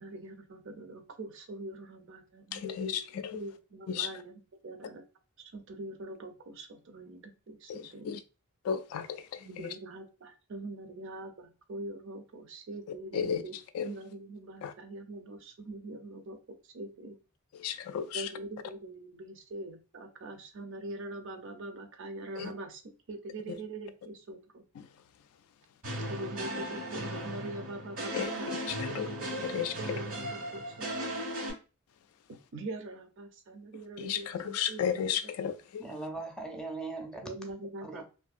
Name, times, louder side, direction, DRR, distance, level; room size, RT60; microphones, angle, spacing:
voice 1, 0.0-3.0 3.3-4.3 4.6-5.0 5.5-8.1 9.4-17.2 18.1-22.8 23.1-24.6 26.1-28.5 28.8-31.1 32.3-35.0 37.2-38.0, right 2 dB, 60° right, 0.5 m, -43 dB
voice 2, 2.5-3.4 3.9-4.1 7.7-8.2 8.6-9.7 13.1-13.4 13.7-13.9 14.6-14.7 17.6-18.3 22.4-22.5 23.5-23.6 24.8-24.9 28.1-29.1 29.5-30.0 34.0-35.8, left 8 dB, 90° left, 0.3 m, -34 dB
sound 1, 25.8-31.5, equal, 90° right, 1.3 m, -37 dB
voice 3, 35.8-37.2 37.8-38.0, right 3 dB, 5° left, 0.5 m, -39 dB
2.6 x 2.6 x 2.4 m
head